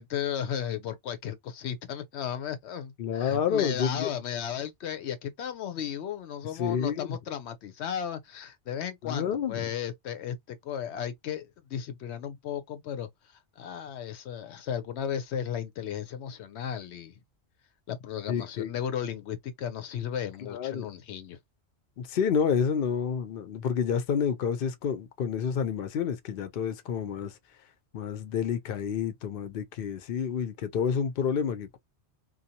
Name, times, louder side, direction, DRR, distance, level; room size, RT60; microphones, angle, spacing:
voice 1, 0.0-17.2 17.9-21.4, left 9 dB, 80° left, 0.9 m, -35 dB
voice 2, 3.0-4.1 6.5-7.2 9.0-9.6 18.3-18.7 20.5-20.9 22.0-27.3 27.9-31.8, left 7 dB, 60° left, 0.7 m, -29 dB
2.6 x 2.3 x 2.7 m
omnidirectional pair, 1.1 m